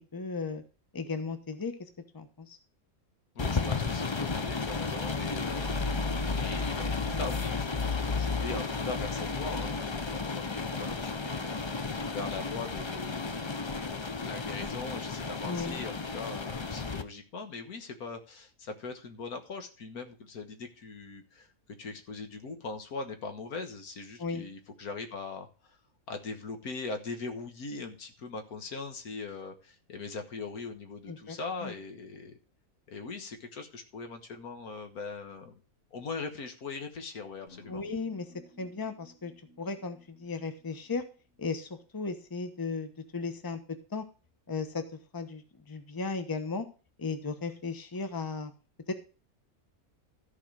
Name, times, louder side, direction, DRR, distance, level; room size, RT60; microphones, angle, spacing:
voice 1, 0.1-0.6 0.9-1.7 2.1-2.6 15.4-15.8 24.2-24.4 31.1-31.7 37.7-38.3 38.6-39.3 39.6-41.0 41.4-43.6 43.9-44.0 44.5-44.8 45.1-46.7 47.0-48.5 48.9-49.0, left 4 dB, 15° left, 8 dB, 0.9 m, -35 dB
voice 2, 3.4-21.5 21.8-25.5 26.1-32.3 32.9-35.5 35.9-37.8, left 4 dB, 85° left, 6 dB, 1.9 m, -41 dB
sound 1, 3.4-17.0, left 4 dB, 35° left, 0.4 m, -33 dB
sound 2, 37.5-41.6, left 1 dB, 55° left, 2.1 m, -57 dB
13.5 x 4.7 x 6.2 m, 0.35 s
omnidirectional pair, 1.5 m